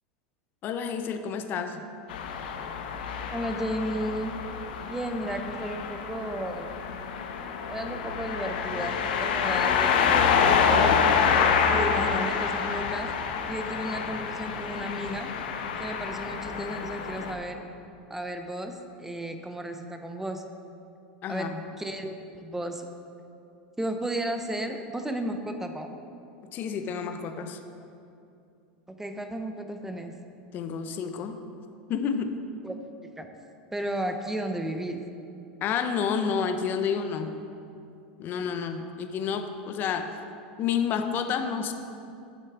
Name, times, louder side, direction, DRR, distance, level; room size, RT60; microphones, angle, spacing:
voice 1, 0.6-1.8 21.2-21.6 26.5-27.6 30.5-31.4 31.9-32.3 35.6-37.3 38.2-40.2 40.6-41.7, left 6 dB, 45° left, 8 dB, 0.7 m, -29 dB
sound 1, 2.1-17.3, left 6 dB, 75° left, 0.8 m, -27 dB
voice 2, 3.3-4.3 4.8-6.7 7.7-11.2 11.7-13.1 13.5-15.3 15.8-17.7 18.1-20.4 21.3-22.9 23.8-25.9 29.0-30.1 32.6-32.8 33.2-33.3 33.7-35.0, right 1 dB, 5° right, 6 dB, 0.6 m, -33 dB
8.2 x 7.6 x 4.6 m, 2.6 s
hypercardioid pair, 110°, 5 cm